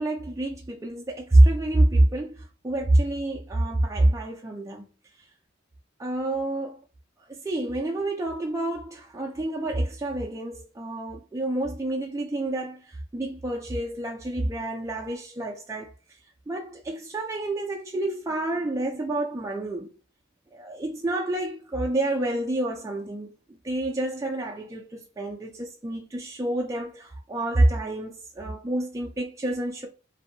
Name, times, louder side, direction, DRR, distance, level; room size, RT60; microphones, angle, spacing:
voice 1, 0.0-4.8 5.2-5.3 6.0-6.8 7.3-16.2 16.5-19.9 20.5-23.3 23.6-29.9, right 1 dB, 15° right, 0.3 m, -27 dB
2.6 x 2.5 x 2.6 m
head